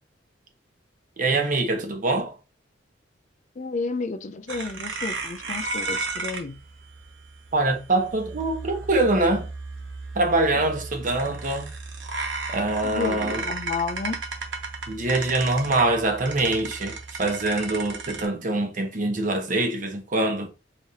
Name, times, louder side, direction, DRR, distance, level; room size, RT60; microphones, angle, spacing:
voice 1, 1.2-2.3 7.5-9.5 10.2-11.7 12.5-13.4 14.9-20.5, right 2 dB, 45° right, 0.9 m, -24 dB
voice 2, 3.6-6.6 12.8-14.2, left 4 dB, 40° left, 0.4 m, -31 dB
sound 1, 4.5-18.2, right 3 dB, 80° right, 1.0 m, -34 dB
4.8 x 3.2 x 2.7 m
head